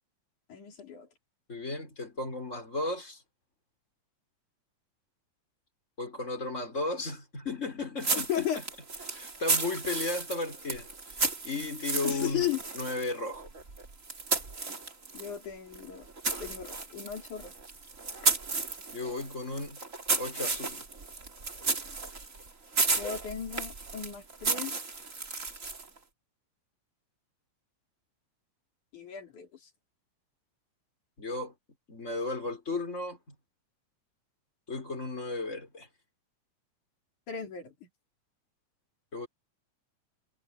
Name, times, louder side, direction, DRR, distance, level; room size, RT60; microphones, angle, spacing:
voice 1, 0.5-1.1 8.2-8.6 12.0-12.6 15.1-16.1 16.4-17.5 23.0-24.8 28.9-29.5 37.3-37.9, left 10 dB, 80° left, 5.2 m, -35 dB
voice 2, 1.5-3.2 6.0-8.5 9.1-11.2 11.4-12.5 12.7-13.5 18.9-19.8 20.2-20.8 31.2-31.5 31.9-33.4 34.7-35.9 39.1-39.3, left 2 dB, 20° left, 5.8 m, -35 dB
sound 1, 8.0-15.4 15.7-26.0, right 3 dB, 25° right, 2.5 m, -33 dB
omnidirectional pair, 3.4 m